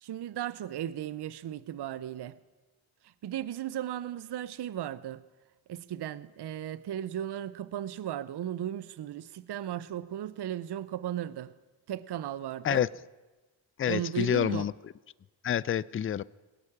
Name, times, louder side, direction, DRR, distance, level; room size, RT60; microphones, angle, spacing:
voice 1, 0.0-2.4 3.0-5.2 5.7-11.5 11.9-12.8 13.8-14.7, right 11 dB, 55° right, 0.6 m, -36 dB
voice 2, 13.8-14.7 15.4-16.2, left 10 dB, 30° left, 0.4 m, -27 dB
18.0 x 8.3 x 8.5 m
supercardioid pair, 40°, 50 cm